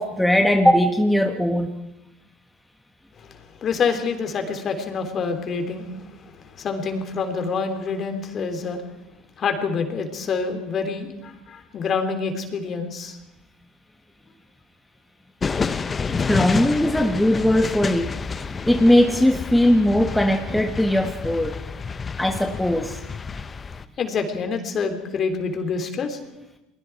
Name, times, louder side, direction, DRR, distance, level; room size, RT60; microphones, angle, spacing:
voice 1, 0.0-1.7 16.3-18.1 18.7-21.5 22.2-23.0, left 1 dB, 5° left, 4 dB, 1.5 m, -19 dB
voice 2, 3.2-8.8 9.4-13.2 24.0-26.2, left 5 dB, 40° left, 6 dB, 3.6 m, -27 dB
sound 1, 15.4-23.9, left 5 dB, 25° left, 1.0 m, -29 dB
29.0 x 21.0 x 4.8 m, 0.91 s
supercardioid pair, 100°, 0 cm